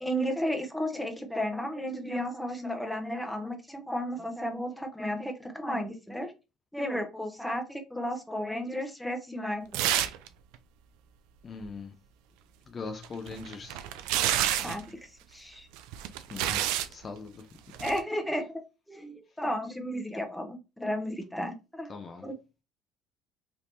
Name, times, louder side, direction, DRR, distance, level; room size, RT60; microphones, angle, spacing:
voice 1, 0.0-6.3 6.7-9.6 14.6-15.0 15.3-15.7 17.8-18.6 18.9-21.9 22.2-22.3, equal, 5° left, 0.8 m, -33 dB
sound 1, 9.7-10.3 10.5-10.6 13.0-14.8 15.8-16.9 17.7-18.0, right 12 dB, 80° right, 0.3 m, -29 dB
voice 2, 11.4-11.9 12.7-13.8 16.3-17.5 21.9-22.3, left 4 dB, 40° left, 0.5 m, -41 dB
3.5 x 2.7 x 2.6 m
supercardioid pair, 85°, 0 cm